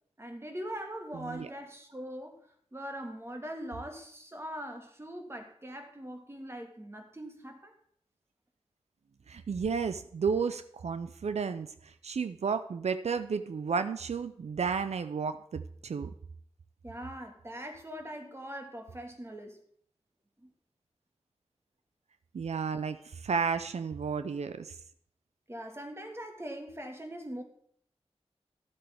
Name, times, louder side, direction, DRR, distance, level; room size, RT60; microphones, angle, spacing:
voice 1, 0.2-7.7 16.8-19.6 20.4-20.5 25.5-27.4, equal, 25° right, 1.7 m, -42 dB
voice 2, 9.3-16.1 22.3-24.8, right 5 dB, 90° right, 0.4 m, -32 dB
12.5 x 7.7 x 3.4 m
wide cardioid pair, 60°, 11 cm